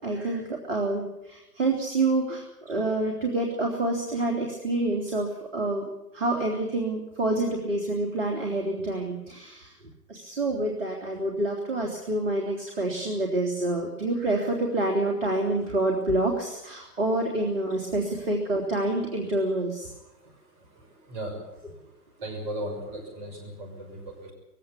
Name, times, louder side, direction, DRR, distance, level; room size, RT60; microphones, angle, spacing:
voice 1, 0.0-5.8 6.1-9.7 10.1-19.9, right 2 dB, 55° right, 0 dB, 3.6 m, -27 dB
voice 2, 20.0-21.5 22.2-24.3, right 1 dB, 30° right, 3 dB, 6.2 m, -38 dB
21.0 x 17.0 x 8.6 m, 0.91 s
figure-of-eight pair, 125°, 46 cm